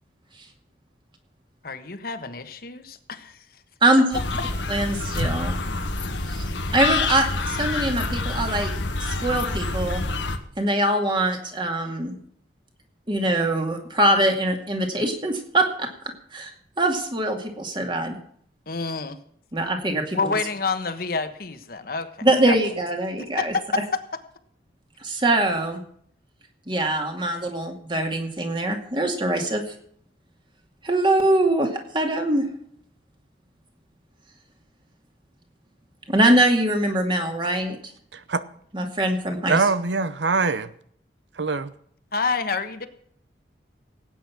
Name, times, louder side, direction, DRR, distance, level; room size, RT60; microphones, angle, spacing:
voice 1, 1.6-3.4 18.7-19.2 20.1-22.1 22.5-22.6 23.2-23.4 23.7-23.8 42.1-42.9, left 4 dB, 55° left, 1.3 m, -28 dB
voice 2, 3.8-4.2 4.7-5.6 6.3-6.4 6.7-8.7 9.0-10.0 10.6-12.2 13.1-15.9 16.3-18.2 19.5-20.4 22.2-23.5 25.0-25.8 26.7-29.6 30.8-32.4 36.1-37.8 38.7-39.6, right 1 dB, 25° right, 2.3 m, -23 dB
sound 1, 4.1-10.4, left 3 dB, 90° left, 1.6 m, -27 dB
voice 3, 38.1-38.5 39.5-40.7 41.3-41.7, right 4 dB, 80° right, 0.8 m, -23 dB
18.0 x 9.1 x 6.0 m
head